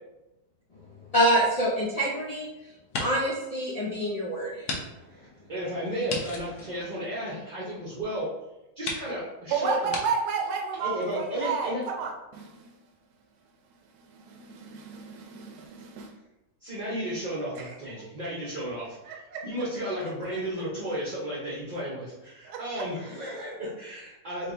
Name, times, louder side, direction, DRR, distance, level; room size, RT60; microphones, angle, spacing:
voice 1, 1.1-2.5 3.0-4.6, equal, 55° left, -6 dB, 0.4 m, -25 dB
sound 1, 1.4-2.4 2.8-3.4 3.8-3.9 4.6-4.8 5.1-5.2 6.1-7.6 8.3-8.4 8.8-9.1 9.9-10.0, left 3 dB, 80° left, 1.3 m, -35 dB
voice 2, 5.1-8.3 8.8-9.9 10.8-11.8 16.6-19.2 19.4-24.5, equal, 35° right, -8 dB, 0.9 m, -33 dB
voice 3, 9.5-12.7 14.2-16.1 17.6-17.7 19.1-19.4 22.4-22.6, right 5 dB, 80° right, 1 dB, 1.1 m, -32 dB
4.6 x 3.1 x 2.6 m, 0.98 s
omnidirectional pair, 1.7 m